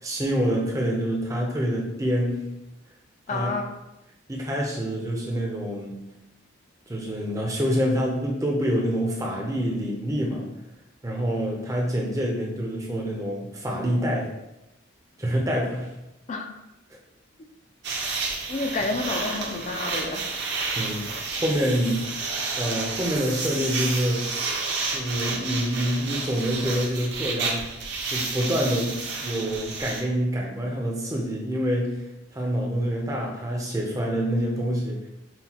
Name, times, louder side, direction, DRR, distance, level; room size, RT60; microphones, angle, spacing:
voice 1, 0.0-2.5 3.3-3.5 4.3-6.0 6.9-10.6 11.0-14.3 15.2-15.9 20.7-21.1 21.3-22.1 22.6-24.6 24.9-27.7 28.1-35.0, equal, 15° right, -1 dB, 0.5 m, -26 dB
voice 2, 3.3-3.6 16.3-16.5 18.5-20.3, left 3 dB, 35° left, 4 dB, 0.4 m, -29 dB
sound 1, 17.8-30.0, right 4 dB, 55° right, 0.7 m, -30 dB
5.7 x 2.2 x 2.8 m, 0.93 s
head